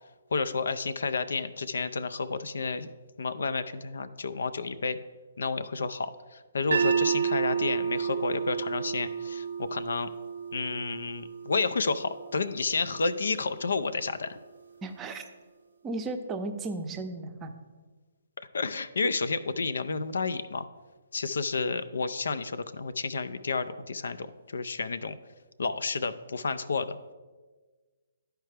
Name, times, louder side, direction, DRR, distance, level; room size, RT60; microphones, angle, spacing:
voice 1, 0.3-2.9 3.2-5.0 5.4-10.1 10.5-14.4 18.5-20.7 21.1-25.2 25.6-27.0, left 4 dB, 75° left, 12 dB, 0.4 m, -31 dB
sound 1, 6.7-12.9, right 7 dB, 75° right, 0.5 m, -31 dB
voice 2, 14.8-15.2 15.8-17.5, right 2 dB, 20° right, 5 dB, 0.6 m, -35 dB
11.0 x 4.6 x 3.3 m, 1.4 s
figure-of-eight pair, 140°, 0 cm